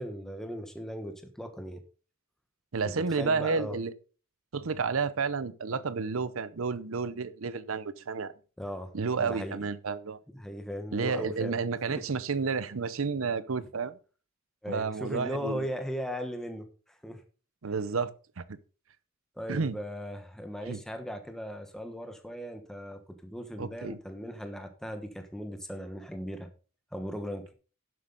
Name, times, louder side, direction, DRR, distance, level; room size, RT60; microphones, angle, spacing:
voice 1, 0.0-1.8 3.1-3.8 8.6-8.9 9.2-9.6 10.3-11.6 11.9-12.0 14.6-17.2 19.4-26.5 26.9-27.5, equal, 5° left, 1.1 m, -38 dB
voice 2, 2.7-3.9 4.5-8.3 8.9-10.2 10.9-14.0 14.7-15.7 17.6-18.1 18.4-18.5 19.5-19.8 20.7-20.8 23.6-24.0, right 5 dB, 75° right, 0.7 m, -31 dB
11.5 x 7.8 x 3.9 m
head